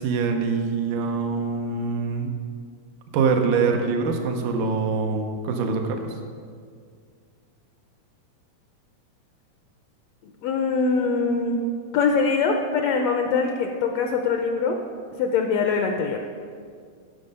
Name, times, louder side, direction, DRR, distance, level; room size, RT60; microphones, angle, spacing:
voice 1, 0.0-2.3 3.1-6.1, right 4 dB, 85° right, 4 dB, 2.4 m, -24 dB
voice 2, 10.4-11.6 11.9-14.8 15.2-16.2, left 5 dB, 75° left, 4 dB, 1.6 m, -23 dB
14.0 x 6.4 x 5.4 m, 2.1 s
omnidirectional pair, 3.6 m